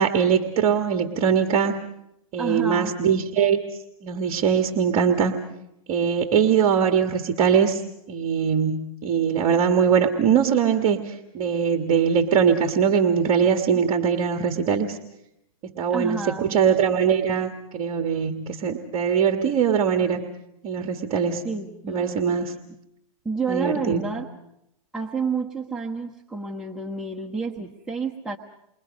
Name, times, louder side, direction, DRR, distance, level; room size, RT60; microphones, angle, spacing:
voice 1, 0.0-1.8 2.3-3.6 4.0-5.3 5.9-7.8 8.1-15.0 15.6-20.3 20.6-21.4 21.9-22.5 23.5-24.0, right 7 dB, 35° right, 5 dB, 1.8 m, -22 dB
voice 2, 2.4-2.9 15.9-16.5 21.4-22.3 23.2-24.3 24.9-28.4, right 4 dB, 5° right, -2 dB, 1.2 m, -29 dB
28.5 x 23.5 x 5.4 m, 0.82 s
hypercardioid pair, 135°, 18 cm